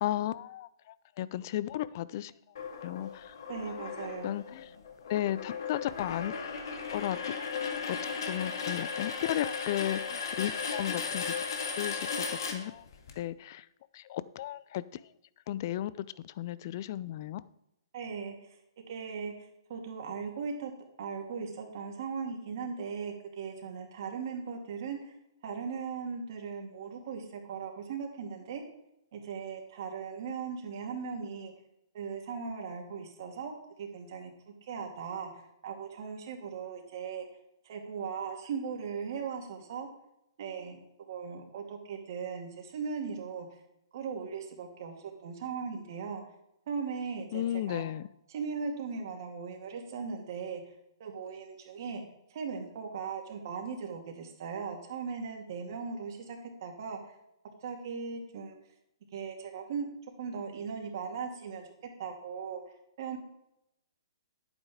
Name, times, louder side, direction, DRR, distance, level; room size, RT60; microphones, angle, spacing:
voice 1, 0.0-0.7 1.2-2.3 2.8-3.3 4.2-4.6 5.1-6.3 6.9-7.4 7.9-8.0 8.3-11.2 11.8-12.8 13.2-13.6 13.9-14.8 15.5-15.9 16.2-17.4 47.3-48.0, left 13 dB, 45° left, 0.5 m, -34 dB
sound 1, 2.6-13.1, left 5 dB, 65° left, 1.8 m, -36 dB
voice 2, 3.5-4.4 17.9-18.6 18.9-20.7 21.0-25.1 25.4-28.6 29.1-31.5 31.9-37.3 37.6-39.9 40.4-40.8 41.1-43.5 43.9-46.2 46.7-47.8 48.3-50.6 51.0-52.0 52.3-57.1 57.6-58.5 59.1-59.9 60.2-61.7 62.0-62.6 63.0-63.2, right 5 dB, 55° right, 2.6 m, -38 dB
11.0 x 8.9 x 3.7 m
hypercardioid pair, 130°, 2 cm